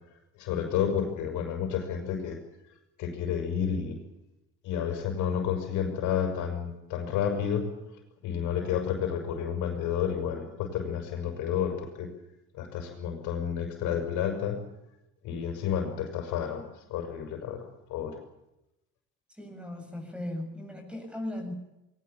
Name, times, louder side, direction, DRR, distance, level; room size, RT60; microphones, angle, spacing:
voice 1, 0.4-2.4 3.0-4.0 4.6-7.7 8.2-12.1 12.5-14.6 15.2-18.2, left 8 dB, 80° left, 6 dB, 6.6 m, -30 dB
voice 2, 19.3-21.5, left 1 dB, 5° right, 4 dB, 7.8 m, -37 dB
22.0 x 19.5 x 8.6 m, 0.91 s
cardioid pair, 120°, 29 cm